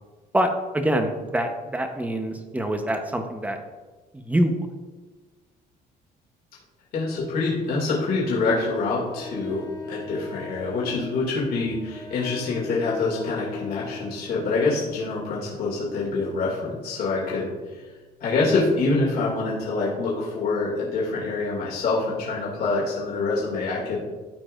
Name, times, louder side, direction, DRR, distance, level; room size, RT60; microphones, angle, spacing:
voice 1, 0.3-3.6 4.1-4.5, right 1 dB, 10° right, 5 dB, 0.9 m, -25 dB
voice 2, 6.9-17.8 18.2-24.0, left 3 dB, 65° left, -5 dB, 2.4 m, -26 dB
Wind instrument woodwind instrument, 9.1-14.6, left 3 dB, 25° left, 1.2 m, -39 dB
13.5 x 4.6 x 2.5 m, 1.3 s
cardioid pair, 110°, 17 cm